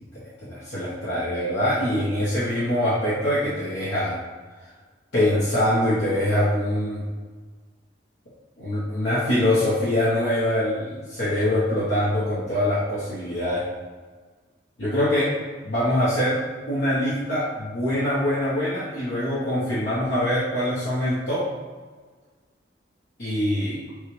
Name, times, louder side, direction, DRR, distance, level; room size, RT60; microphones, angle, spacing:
voice 1, 0.0-4.2 5.1-7.0 8.6-13.7 14.8-15.3 15.6-16.4 16.7-21.5 23.2-23.8, left 1 dB, 65° left, -10 dB, 1.1 m, -24 dB
6.4 x 2.4 x 3.2 m, 1.5 s
head